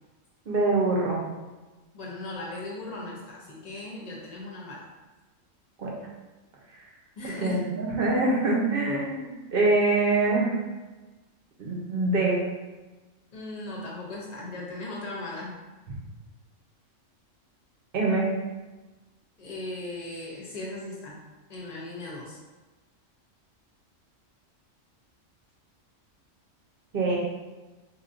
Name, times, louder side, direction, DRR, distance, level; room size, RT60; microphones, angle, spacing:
voice 1, 0.5-1.2 5.8-5.9 7.4-7.6 7.9-10.6 11.6-12.4 17.9-18.3 26.9-27.2, right 2 dB, 50° right, -3 dB, 0.9 m, -24 dB
voice 2, 1.9-4.9 7.2-7.7 13.3-15.6 19.4-21.2 21.5-22.4, left 2 dB, 40° left, -3 dB, 0.7 m, -37 dB
4.5 x 2.7 x 2.5 m, 1.2 s
omnidirectional pair, 1.3 m